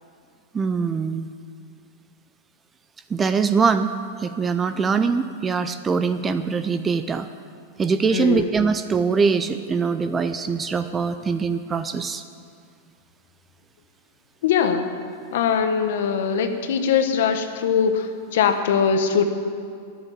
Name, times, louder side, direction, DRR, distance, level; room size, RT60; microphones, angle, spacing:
voice 1, 0.5-1.3 3.1-3.9 4.2-7.3 7.8-12.2, right 5 dB, 10° right, 10 dB, 0.4 m, -23 dB
voice 2, 8.1-8.5 14.4-14.9 15.3-19.2, left 7 dB, 65° left, 7 dB, 1.3 m, -21 dB
14.5 x 7.1 x 9.9 m, 2.3 s
supercardioid pair, 170°, 0 cm